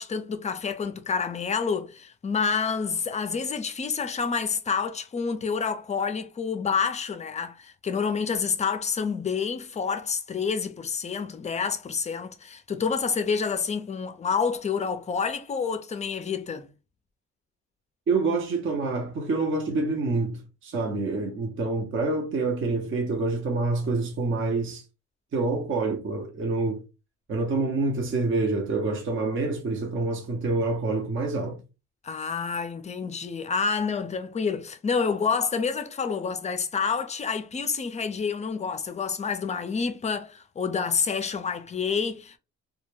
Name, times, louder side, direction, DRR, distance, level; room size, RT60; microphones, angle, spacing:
voice 1, 0.0-16.7 32.0-42.4, left 5 dB, 25° left, 0.4 m, -28 dB
voice 2, 18.1-24.9 25.3-26.8 27.3-31.6, right 3 dB, 40° right, 0.7 m, -27 dB
2.2 x 2.1 x 3.1 m
cardioid pair, 90°, 30 cm